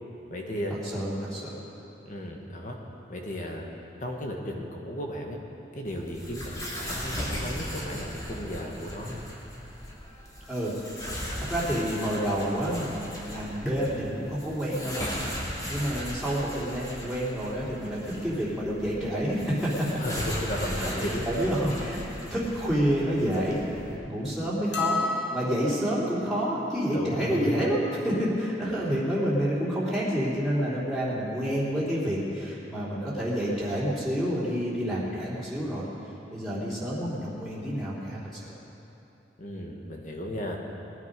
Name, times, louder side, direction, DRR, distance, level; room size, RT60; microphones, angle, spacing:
voice 1, 0.3-0.7 2.0-2.8 3.1-3.7 4.0-5.4 5.7-9.2 20.0-21.3 26.9-27.6 28.9-29.0 39.4-40.6, equal, 45° left, 1 dB, 1.7 m, -34 dB
voice 2, 0.9-1.6 10.5-10.7 11.4-15.2 15.7-19.9 20.5-22.0 22.3-23.7 24.0-35.8 36.3-38.5, equal, ahead, -9 dB, 3.3 m, -29 dB
sound 1, 5.8-24.0, equal, 20° left, 2.5 m, -38 dB
sound 2, 24.7-26.1, left 3 dB, 80° left, 1.7 m, -30 dB
20.5 x 10.0 x 5.3 m, 3.0 s
head